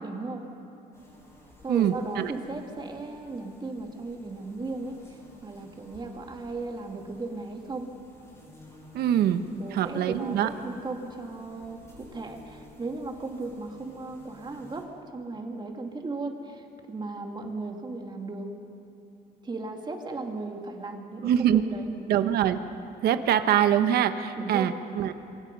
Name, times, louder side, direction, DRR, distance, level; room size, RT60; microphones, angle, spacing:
voice 1, 0.0-0.4 1.6-7.9 9.6-14.9 15.1-18.5 19.4-21.9 24.4-24.7, right 3 dB, 25° right, 2 dB, 2.6 m, -36 dB
sound 1, 0.9-14.8, left 1 dB, 15° left, 7.9 m, -53 dB
voice 2, 1.7-2.3 8.9-9.4 9.7-10.5 21.2-21.6 22.1-22.6 23.0-25.1, right 10 dB, 70° right, 9 dB, 1.1 m, -24 dB
27.0 x 24.0 x 5.5 m, 2.8 s
cardioid pair, 110°, 17 cm